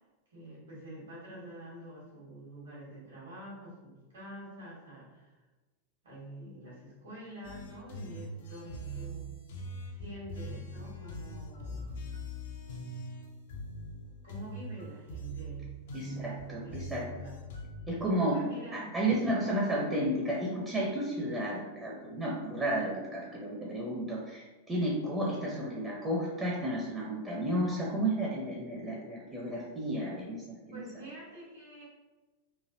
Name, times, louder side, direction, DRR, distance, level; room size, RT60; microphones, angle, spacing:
voice 1, 0.3-5.4 6.0-9.3 9.9-11.9 14.2-15.6 16.6-17.4 18.3-19.0 30.7-31.8, right 1 dB, 65° right, -7 dB, 1.2 m, -47 dB
sound 1, 7.4-17.9, equal, 60° left, 0.4 m, -42 dB
voice 2, 15.9-17.0 17.9-18.4 18.7-31.0, right 1 dB, 15° right, -4 dB, 0.6 m, -32 dB
3.1 x 2.6 x 2.6 m, 1.2 s
figure-of-eight pair, 90°, 0 cm